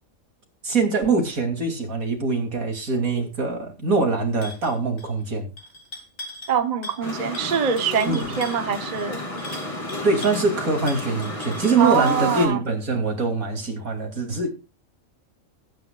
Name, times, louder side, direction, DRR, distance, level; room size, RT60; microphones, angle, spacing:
voice 1, 0.6-5.5 8.1-8.4 10.0-14.5, right 3 dB, 80° right, 3.3 m, -23 dB
sound 1, 4.4-4.7 5.0-5.3 5.6-6.6 6.8-7.1 7.3-10.4 10.9-12.2, left 2 dB, 50° left, 3.2 m, -40 dB
voice 2, 6.5-9.2 11.8-12.6, right 7 dB, 35° right, 0.9 m, -24 dB
sound 2, 7.0-12.5, left 1 dB, 25° left, 2.9 m, -32 dB
20.0 x 9.5 x 2.3 m
omnidirectional pair, 1.4 m